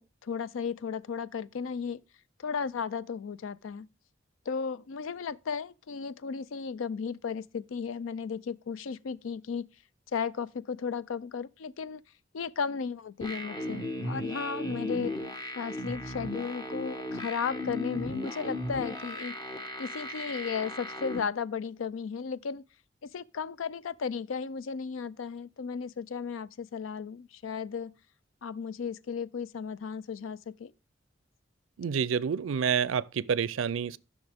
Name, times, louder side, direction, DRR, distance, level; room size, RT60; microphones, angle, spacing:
voice 1, 0.0-2.0 2.4-3.9 4.5-9.7 10.1-12.0 12.3-15.1 15.5-19.4 19.8-22.6 23.0-28.0 28.4-30.7, left 6 dB, 90° left, 0.4 m, -35 dB
sound 1, 13.2-21.2, left 1 dB, 20° left, 1.0 m, -36 dB
voice 2, 31.8-34.0, right 7 dB, 85° right, 0.4 m, -28 dB
13.5 x 6.2 x 3.5 m
head